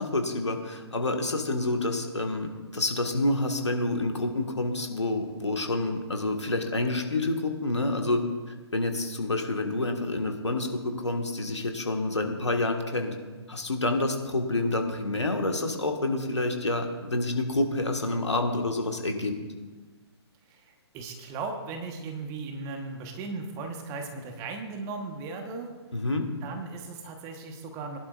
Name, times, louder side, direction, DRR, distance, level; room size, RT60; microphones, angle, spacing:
voice 1, 0.0-8.2 8.7-13.1 13.5-19.3 25.9-26.3, left 2 dB, 80° left, 4 dB, 1.7 m, -28 dB
voice 2, 20.5-25.7 26.4-28.0, right 4 dB, 20° right, 4 dB, 1.3 m, -37 dB
20.5 x 11.0 x 2.5 m, 1.3 s
figure-of-eight pair, 130°, 14 cm